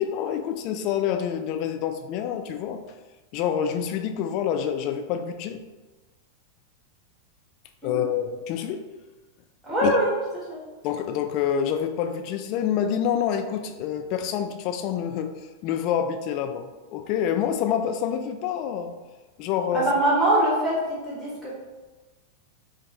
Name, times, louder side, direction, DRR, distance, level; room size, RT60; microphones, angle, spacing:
voice 1, 0.0-2.8 3.3-5.6 7.8-8.8 9.8-10.0 10.8-15.3 15.6-18.9 19.4-19.9, left 9 dB, 40° left, 7 dB, 0.3 m, -27 dB
voice 2, 9.6-10.1 19.7-20.8 21.0-21.5, right 1 dB, 10° right, -8 dB, 1.3 m, -22 dB
5.1 x 2.2 x 2.9 m, 1.2 s
figure-of-eight pair, 90°, 0 cm